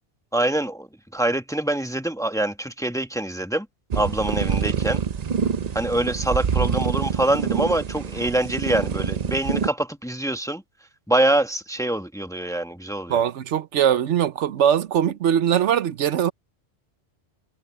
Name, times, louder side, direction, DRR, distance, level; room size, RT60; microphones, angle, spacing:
voice 1, 0.3-3.7 3.9-5.0 5.7-10.6 11.1-13.2, right 1 dB, 5° left, 1.1 m, -25 dB
sound 1, 3.9-9.7, right 7 dB, 45° right, 0.6 m, -26 dB
voice 2, 13.1-16.3, right 9 dB, 90° right, 1.1 m, -21 dB
omnidirectional pair, 1.2 m